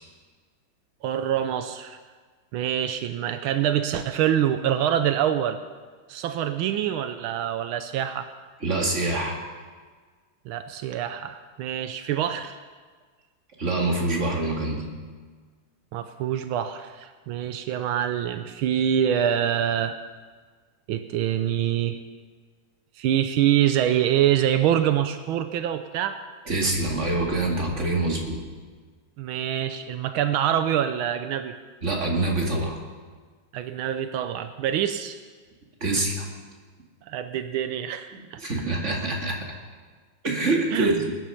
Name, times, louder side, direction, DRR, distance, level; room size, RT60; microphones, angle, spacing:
voice 1, 1.0-2.0 2.5-5.6 6.1-8.3 10.5-12.6 15.9-20.0 20.9-22.0 23.0-26.2 29.2-31.5 33.5-35.2 37.1-38.4 40.7-41.1, right 10 dB, 85° right, 9 dB, 1.5 m, -25 dB
voice 2, 8.6-9.4 13.6-14.9 26.5-28.4 31.8-32.8 35.8-36.3 38.1-39.4 40.2-41.1, right 2 dB, 35° right, -1 dB, 2.3 m, -25 dB
20.0 x 10.0 x 5.7 m, 1.5 s
omnidirectional pair, 2.2 m